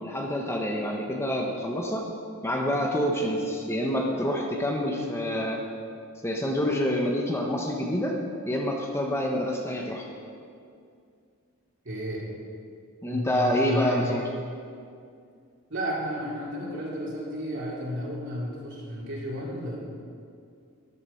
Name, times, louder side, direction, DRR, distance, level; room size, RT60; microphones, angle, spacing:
voice 1, 0.0-2.1 2.4-5.6 6.2-8.2 8.4-10.1 13.0-14.2, equal, 10° left, 0 dB, 1.1 m, -27 dB
voice 2, 11.8-12.3 13.1-14.2 15.7-19.8, equal, 55° right, -5 dB, 4.2 m, -32 dB
13.5 x 12.0 x 5.8 m, 2.3 s
head